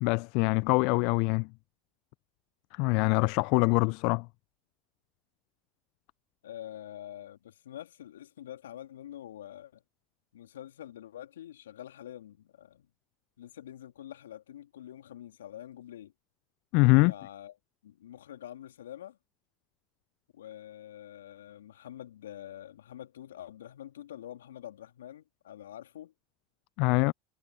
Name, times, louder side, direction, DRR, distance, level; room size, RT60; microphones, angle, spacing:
voice 1, 0.0-1.5 2.7-4.3 16.7-17.1 26.8-27.1, left 30 dB, 60° left, 0.4 m, -24 dB
voice 2, 6.4-9.8 10.3-12.9 13.4-16.1 16.9-17.5 17.8-19.2 20.3-26.1, left 11 dB, 75° left, 3.1 m, -46 dB
hypercardioid pair, 80°, 0 cm